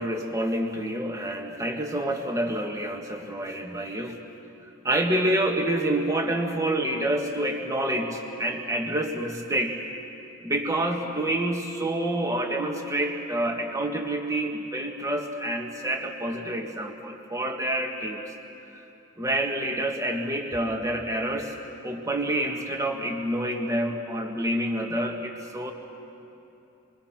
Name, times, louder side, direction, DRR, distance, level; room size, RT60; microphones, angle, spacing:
voice 1, 0.0-4.2 4.8-9.8 10.4-18.2 19.2-21.5 21.8-25.7, right 1 dB, 15° right, 2 dB, 1.7 m, -28 dB
27.0 x 22.5 x 5.9 m, 2.9 s
head